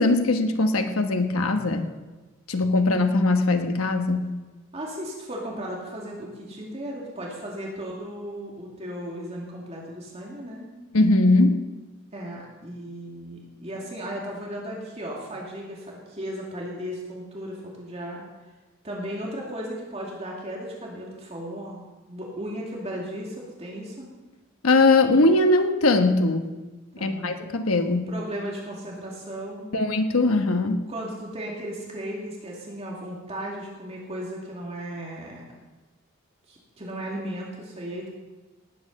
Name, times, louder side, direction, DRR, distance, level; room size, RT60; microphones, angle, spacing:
voice 1, 0.0-1.9 2.5-4.3 10.9-11.6 24.6-26.4 27.0-28.1 29.7-30.9, left 2 dB, 85° left, 6 dB, 1.2 m, -20 dB
voice 2, 4.7-10.7 12.1-18.2 18.8-21.8 22.1-24.1 27.0-27.3 28.1-29.7 30.9-35.4 36.5-38.1, equal, 30° right, -3 dB, 2.4 m, -35 dB
18.5 x 8.8 x 5.4 m, 1.2 s
head